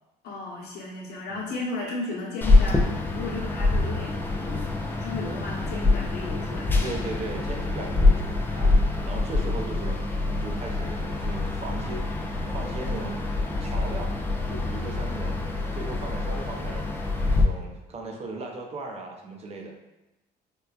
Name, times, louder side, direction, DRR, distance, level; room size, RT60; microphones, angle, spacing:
voice 1, 0.2-6.9, left 3 dB, 75° left, -3 dB, 0.9 m, -35 dB
sound 1, 2.4-17.4, left 2 dB, 10° left, 0.4 m, -25 dB
voice 2, 6.8-12.1 12.5-14.2 14.5-16.9 17.3-19.8, right 3 dB, 40° right, 1 dB, 0.6 m, -37 dB
4.5 x 2.2 x 2.4 m, 0.98 s
cardioid pair, 110°, 17 cm